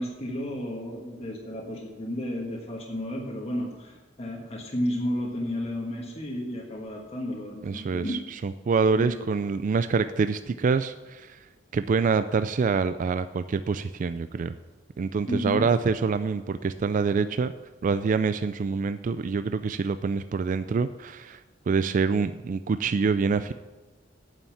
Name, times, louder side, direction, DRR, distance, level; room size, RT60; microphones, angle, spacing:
voice 1, 0.0-8.1 8.9-9.2 15.3-15.7, left 1 dB, 35° left, -2 dB, 1.4 m, -32 dB
voice 2, 7.7-11.4 11.7-14.5 15.0-17.5 17.8-21.4 21.7-23.5, right 5 dB, 40° right, 11 dB, 0.3 m, -26 dB
9.0 x 7.0 x 7.3 m, 1.2 s
head